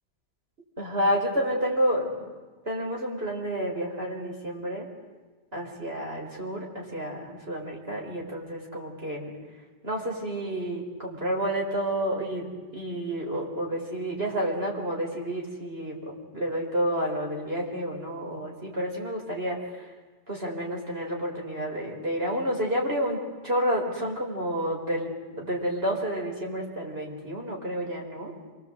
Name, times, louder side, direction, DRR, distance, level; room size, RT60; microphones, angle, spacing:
voice 1, 0.8-2.1 2.6-4.9 5.5-9.3 9.8-16.0 16.3-19.6 20.3-23.2 23.4-25.1 25.4-28.3, equal, 60° right, -1 dB, 4.6 m, -30 dB
29.0 x 23.0 x 7.9 m, 1.4 s
omnidirectional pair, 1.1 m